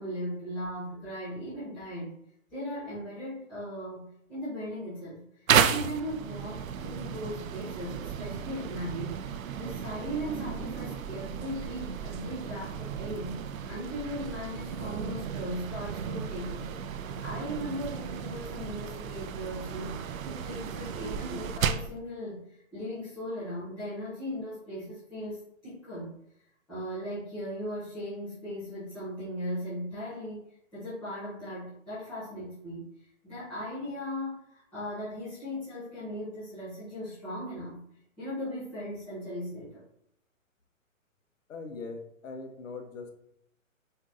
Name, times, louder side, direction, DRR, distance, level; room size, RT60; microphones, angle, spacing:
voice 1, 0.0-2.1 2.5-13.3 13.7-26.1 26.7-30.4 30.7-37.8 38.2-39.8, equal, 5° left, -15 dB, 0.4 m, -38 dB
sound 1, 5.5-22.0, right 8 dB, 75° right, 0.5 m, -33 dB
voice 2, 41.5-43.2, left 4 dB, 65° left, 5 dB, 0.9 m, -41 dB
5.4 x 2.7 x 2.5 m, 0.75 s
hypercardioid pair, 140°, 41 cm